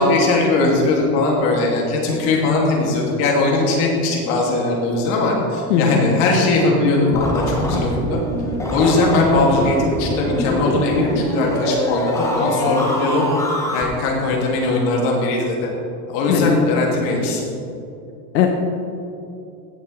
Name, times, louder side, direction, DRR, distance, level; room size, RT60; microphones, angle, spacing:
voice 1, 0.0-8.2 8.7-13.2 13.7-15.7 16.1-17.5, left 2 dB, 50° left, -2 dB, 2.6 m, -19 dB
voice 2, 5.7-6.0 16.3-16.6 18.3-18.5, left 8 dB, 85° left, 2 dB, 1.1 m, -17 dB
sound 1, 7.1-13.8, equal, 5° left, 0.8 m, -23 dB
16.5 x 6.9 x 3.4 m, 2.7 s
supercardioid pair, 150°, 50 cm